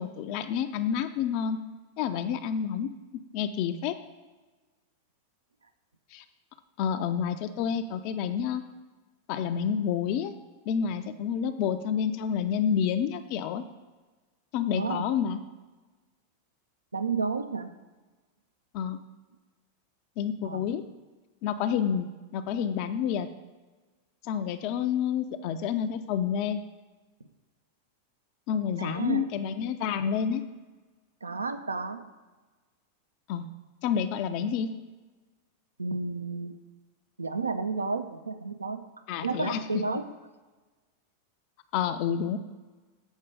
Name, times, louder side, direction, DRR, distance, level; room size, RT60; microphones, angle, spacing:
voice 1, 0.0-1.6 2.0-4.0 6.1-6.2 6.8-8.6 9.3-10.3 10.7-13.6 14.5-15.4 18.7-19.0 20.2-20.8 21.4-23.3 24.2-26.6 28.5-30.4 33.3-33.5 33.8-34.7 39.1-39.6 41.7-42.4, left 8 dB, 45° left, 9 dB, 0.3 m, -29 dB
voice 2, 14.8-15.1 16.9-17.7 20.4-20.7 28.8-29.3 31.2-32.0 35.8-36.5 37.2-38.8 39.2-40.0, right 4 dB, 80° right, 9 dB, 0.4 m, -31 dB
7.2 x 4.3 x 4.9 m, 1.3 s
figure-of-eight pair, 90°, 0 cm